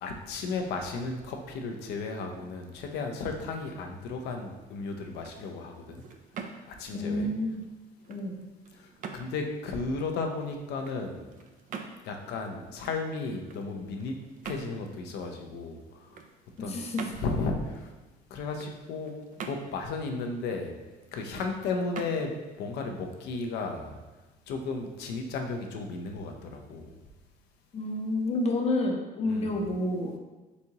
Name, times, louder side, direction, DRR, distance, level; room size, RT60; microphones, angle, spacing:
voice 1, 0.0-6.0 6.8-7.3 9.1-11.3 12.0-14.1 14.4-15.8 16.6-16.8 17.1-17.9 18.3-19.1 19.5-20.7 21.1-22.3 22.6-24.0 24.5-26.9 29.3-29.6, left 3 dB, 80° left, 3 dB, 0.6 m, -34 dB
sound 1, 5.1-23.9, right 5 dB, 50° right, 0.4 m, -46 dB
voice 2, 6.9-7.6 8.1-8.4 16.6-17.0 27.7-30.2, left 1 dB, 40° left, 2 dB, 0.6 m, -29 dB
4.1 x 3.6 x 2.8 m, 1.2 s
cardioid pair, 110°, 17 cm